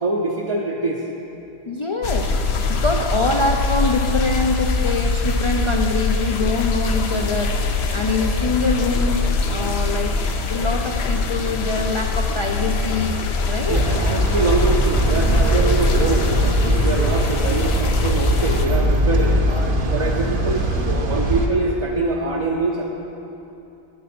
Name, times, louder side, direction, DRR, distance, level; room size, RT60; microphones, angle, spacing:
voice 1, 0.0-1.0 13.7-19.4 19.9-22.8, right 2 dB, 40° right, -2 dB, 0.6 m, -24 dB
voice 2, 1.7-9.2 9.5-10.2 10.5-13.2 13.5-14.0 15.3-15.4 19.0-19.8, left 3 dB, 45° left, 1 dB, 0.4 m, -24 dB
Allen Gardens Waterfall, 2.0-18.7, left 3 dB, 85° left, 1.0 m, -23 dB
sound 1, 13.7-21.5, right 1 dB, 60° right, 1.0 m, -20 dB
9.2 x 7.5 x 6.0 m, 2.8 s
omnidirectional pair, 1.0 m